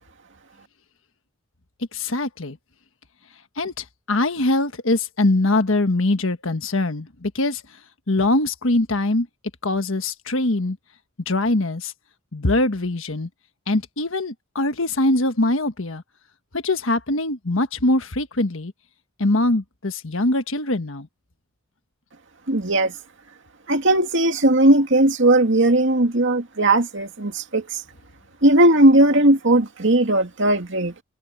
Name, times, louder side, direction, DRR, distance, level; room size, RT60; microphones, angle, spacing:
voice 1, 1.9-2.6 3.6-7.6 8.1-9.3 9.6-10.8 11.3-11.9 12.3-13.3 13.7-16.0 16.5-18.7 19.2-21.1, left 2 dB, 70° left, 1.5 m, -22 dB
voice 2, 22.5-22.9 23.7-27.8 28.4-30.9, right 1 dB, 60° right, 2.7 m, -17 dB
head